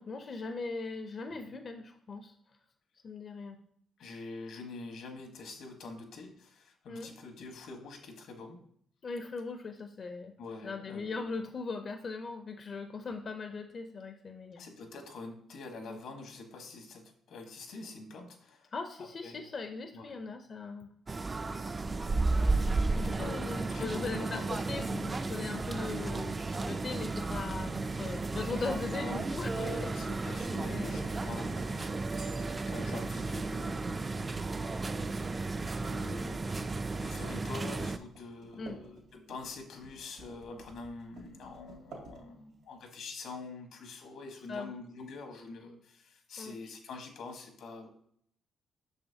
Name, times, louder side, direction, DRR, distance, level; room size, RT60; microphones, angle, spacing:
voice 1, 0.0-2.3 3.0-3.6 6.9-7.1 9.0-10.3 10.6-14.7 15.9-16.0 18.7-20.9 23.0-26.4 26.6-29.5 29.8-29.9 30.2-30.3 30.6-31.6 38.6-38.8 44.5-44.7 46.4-46.5, left 4 dB, 45° left, 6 dB, 0.5 m, -39 dB
voice 2, 4.0-8.6 10.4-11.3 14.5-18.7 19.0-19.4 19.9-20.2 22.8-24.6 27.9-35.3 35.9-47.9, left 3 dB, 80° left, 4 dB, 1.2 m, -46 dB
sound 1, 21.1-38.0, right 3 dB, 30° right, 0.3 m, -33 dB
sound 2, 33.5-42.7, right 2 dB, 85° right, 2.2 m, -54 dB
6.2 x 5.6 x 2.7 m, 0.65 s
cardioid pair, 90°, 0 cm